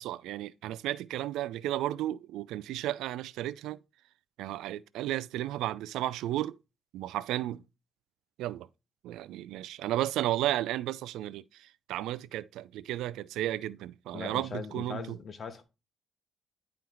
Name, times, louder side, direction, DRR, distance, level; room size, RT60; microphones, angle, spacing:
voice 1, 0.0-3.8 4.4-6.6 6.9-7.6 8.4-8.7 9.0-15.2, right 14 dB, 90° right, 0.4 m, -33 dB
voice 2, 14.1-15.6, left 6 dB, 45° left, 1.6 m, -40 dB
10.5 x 4.4 x 3.9 m
cardioid pair, 90°, 0 cm